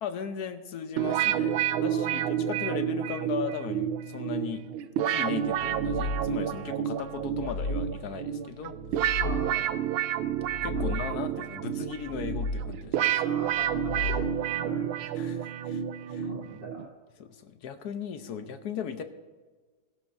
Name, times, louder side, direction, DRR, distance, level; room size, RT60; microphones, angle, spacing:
voice 1, 0.0-4.6 5.1-9.2 10.6-13.2 15.2-15.8 16.1-16.3 17.2-19.0, left 7 dB, 65° left, 9 dB, 1.0 m, -37 dB
sound 1, 1.0-16.9, right 10 dB, 80° right, 1.4 m, -30 dB
voice 2, 1.8-2.2 9.2-9.7 10.7-11.0 13.2-14.9 15.4-15.7 16.0-16.9, right 2 dB, 55° right, -3 dB, 3.9 m, -42 dB
sound 2, 5.5-6.6 7.1-8.2 8.7-9.8 10.3-11.4 11.9-13.0 13.5-14.6, left 2 dB, 85° left, 0.7 m, -35 dB
17.0 x 15.5 x 2.6 m, 1.4 s
omnidirectional pair, 2.3 m